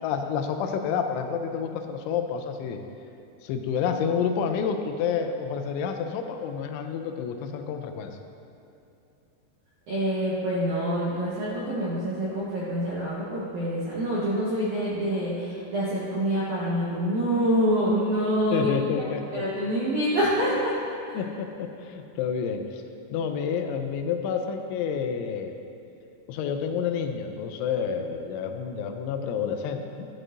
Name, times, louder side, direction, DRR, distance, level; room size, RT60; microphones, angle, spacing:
voice 1, 0.0-2.8 3.4-8.1 18.5-19.4 21.1-22.8 23.1-25.5 26.3-30.1, left 7 dB, 85° left, 5 dB, 3.0 m, -29 dB
voice 2, 9.9-18.7 19.3-20.7 21.1-21.2, equal, 80° right, -8 dB, 1.7 m, -26 dB
10.5 x 9.8 x 2.6 m, 2.7 s
omnidirectional pair, 5.3 m